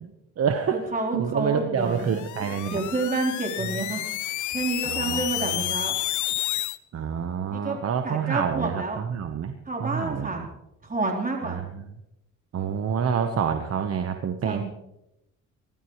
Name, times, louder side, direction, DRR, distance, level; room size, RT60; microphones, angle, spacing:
voice 1, 0.0-0.8 1.1-2.8 3.7-3.8 4.8-5.7 6.9-9.5 9.8-10.3 11.4-11.6 12.5-14.6, right 7 dB, 55° right, 7 dB, 1.2 m, -28 dB
voice 2, 0.7-6.0 7.5-7.8 8.0-9.0 9.7-10.5 10.8-11.6 14.4-14.6, right 3 dB, 25° right, 0 dB, 3.9 m, -29 dB
sound 1, 1.9-6.8, left 15 dB, 75° left, 0.7 m, -30 dB
24.5 x 13.0 x 3.2 m, 0.87 s
cardioid pair, 90°, 30 cm